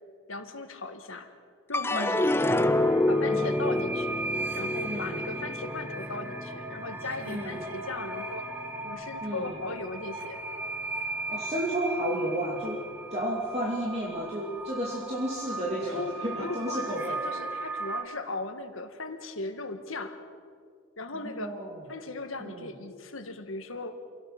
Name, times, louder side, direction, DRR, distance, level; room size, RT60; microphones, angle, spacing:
voice 1, 0.3-1.3 1.7-2.7 3.1-4.2 4.6-8.5 8.8-10.4 15.9-20.2 21.0-21.6 21.9-24.0, left 3 dB, 85° left, 8 dB, 1.7 m, -38 dB
sound 1, 1.7-8.2 8.6-9.3, left 2 dB, 10° left, 0.6 m, -28 dB
voice 2, 1.9-2.3 3.3-3.6 4.8-5.2 7.3-7.6 9.2-9.6 11.3-12.8 13.1-17.2 21.1-21.8 22.4-22.7, right 1 dB, 30° right, -3 dB, 2.6 m, -32 dB
sound 2, 2.6-18.0, right 2 dB, 10° right, 1.8 m, -37 dB
27.5 x 17.5 x 6.0 m, 2.2 s
head